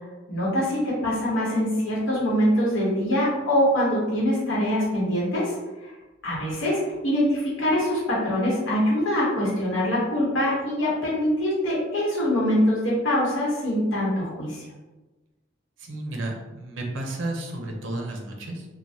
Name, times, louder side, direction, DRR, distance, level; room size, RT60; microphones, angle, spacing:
voice 1, 0.3-5.5 5.8-5.9 6.2-14.6, equal, 80° left, -6 dB, 1.0 m, -24 dB
voice 2, 15.8-18.7, right 2 dB, 75° right, 1 dB, 0.6 m, -32 dB
3.2 x 2.1 x 2.7 m, 1.1 s
head